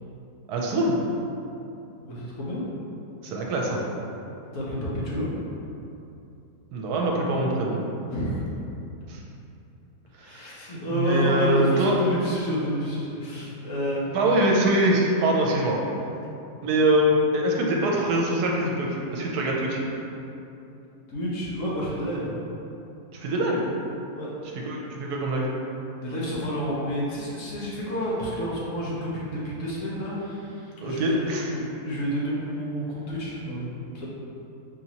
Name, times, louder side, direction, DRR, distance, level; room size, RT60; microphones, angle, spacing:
voice 1, 0.5-1.0 3.2-3.9 6.7-7.8 9.1-9.2 10.2-10.5 10.9-12.0 14.1-15.8 16.6-19.8 23.1-23.6 24.7-25.5 30.8-31.5, right 1 dB, 80° right, -1 dB, 1.1 m, -23 dB
voice 2, 2.0-2.7 4.5-5.3 8.1-8.4 10.2-14.2 21.1-22.4 24.1-24.6 26.0-34.1, equal, 60° left, -6 dB, 1.0 m, -30 dB
4.8 x 2.9 x 2.8 m, 2.8 s
omnidirectional pair, 1.7 m